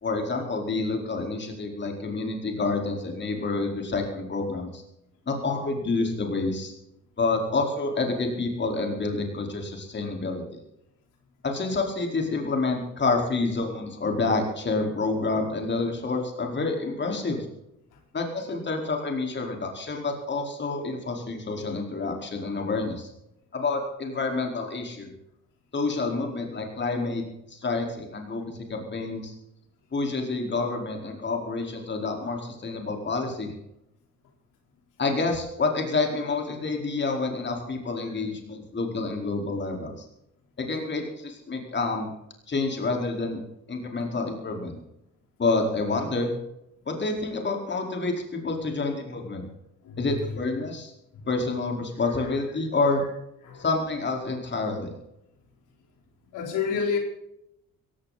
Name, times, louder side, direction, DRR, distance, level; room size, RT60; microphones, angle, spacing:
voice 1, 0.0-4.8 5.3-6.7 7.2-10.6 11.4-17.5 18.1-23.1 23.5-25.1 25.7-29.3 29.9-33.5 35.0-40.0 40.6-42.1 42.5-43.4 43.7-44.8 45.4-46.3 46.8-49.5 50.0-50.9 51.2-53.1 53.6-54.9, left 3 dB, 35° left, 2 dB, 4.5 m, -28 dB
voice 2, 56.3-57.0, left 6 dB, 85° left, 2 dB, 4.2 m, -28 dB
17.0 x 16.0 x 4.2 m, 0.82 s
cardioid pair, 90°, 30 cm